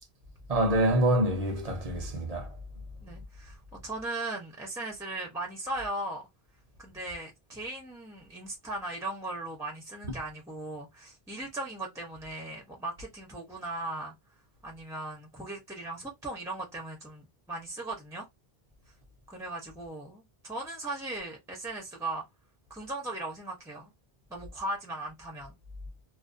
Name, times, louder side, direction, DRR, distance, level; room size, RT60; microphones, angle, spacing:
voice 1, 0.5-2.5 10.0-10.2, right 1 dB, 45° right, 0.6 m, -26 dB
voice 2, 3.0-6.2 6.8-14.1 14.6-18.3 19.3-22.2 22.7-23.9 24.3-25.5, right 2 dB, 5° right, 0.5 m, -38 dB
2.4 x 2.1 x 2.4 m
omnidirectional pair, 1.0 m